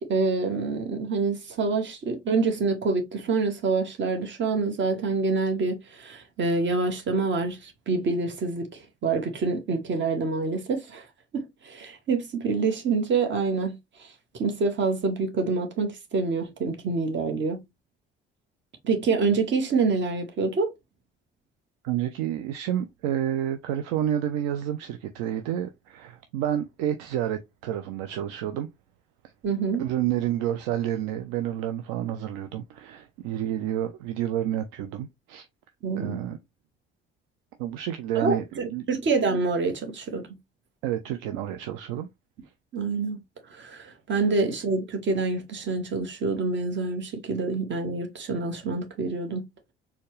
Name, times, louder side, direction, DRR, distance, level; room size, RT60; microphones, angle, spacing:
voice 1, 0.0-8.7 9.0-11.0 11.3-14.1 14.3-17.6 18.8-20.7 29.4-29.8 35.8-36.2 38.2-40.2 42.7-43.2 43.5-49.4, right 4 dB, 40° right, 1.2 m, -26 dB
voice 2, 21.8-28.7 29.8-35.5 36.0-36.4 37.6-38.9 40.8-42.1, right 11 dB, 65° right, 0.5 m, -29 dB
4.2 x 2.3 x 3.1 m
figure-of-eight pair, 50°, 29 cm